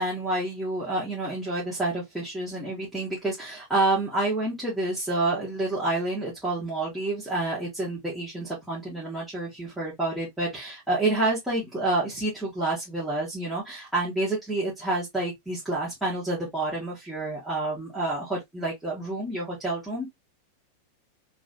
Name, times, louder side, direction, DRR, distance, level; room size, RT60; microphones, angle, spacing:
voice 1, 0.0-20.1, right 2 dB, 5° right, 1.6 m, -28 dB
3.1 x 3.1 x 2.7 m
figure-of-eight pair, 90°, 0 cm